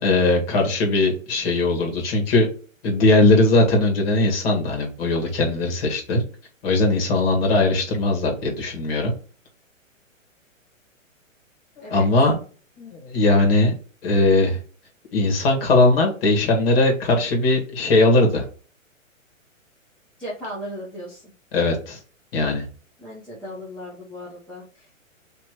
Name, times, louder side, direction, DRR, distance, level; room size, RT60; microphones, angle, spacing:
voice 1, 0.0-2.5 2.8-6.2 6.6-9.1 11.8-12.4 12.8-13.7 14.0-14.6 15.1-18.4 21.5-22.0 22.3-22.7, left 2 dB, 45° left, 1 dB, 1.8 m, -19 dB
voice 2, 20.2-21.3 23.0-24.9, equal, 5° left, -9 dB, 0.7 m, -36 dB
3.1 x 3.0 x 4.6 m, 0.39 s
hypercardioid pair, 140°, 40 cm